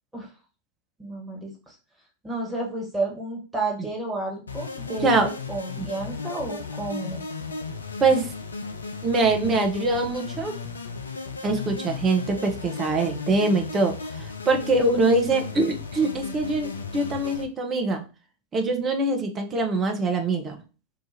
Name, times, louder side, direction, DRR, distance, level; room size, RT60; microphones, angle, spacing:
voice 1, 1.0-1.8 2.2-7.2, right 2 dB, 5° right, -3 dB, 1.3 m, -31 dB
sound 1, 4.5-17.4, left 4 dB, 75° left, 0.4 m, -35 dB
voice 2, 8.0-8.3 9.0-10.5 11.4-18.0 18.5-20.6, right 3 dB, 25° right, 4 dB, 0.7 m, -23 dB
2.8 x 2.4 x 4.0 m, 0.33 s
figure-of-eight pair, 90°, 0 cm